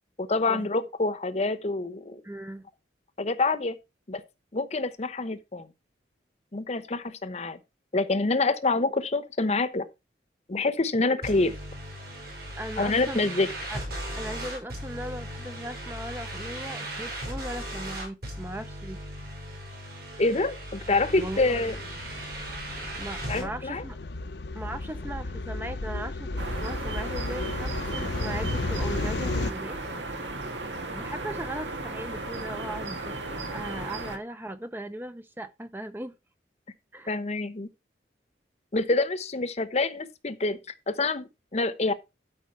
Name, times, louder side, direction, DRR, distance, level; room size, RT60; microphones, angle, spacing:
voice 1, 0.2-2.2 3.2-3.7 4.1-4.2 4.5-5.7 6.5-7.6 7.9-9.9 10.5-11.5 12.8-13.5 20.2-21.8 23.3-23.8 37.1-37.7 38.7-40.6 40.9-41.9, left 3 dB, 40° left, 0.8 m, -26 dB
voice 2, 2.2-2.6 12.6-13.3 13.7-13.8 14.2-19.0 21.2-21.6 23.0-24.0 24.6-29.8 30.9-36.2 36.9-37.2, right 1 dB, 10° right, 0.5 m, -38 dB
sound 1, 11.2-23.5, right 1 dB, 60° right, 5.7 m, -37 dB
sound 2, 20.8-29.5, left 2 dB, 70° left, 0.7 m, -34 dB
sound 3, 26.4-34.2, right 2 dB, 85° right, 1.8 m, -35 dB
12.5 x 5.0 x 4.5 m
head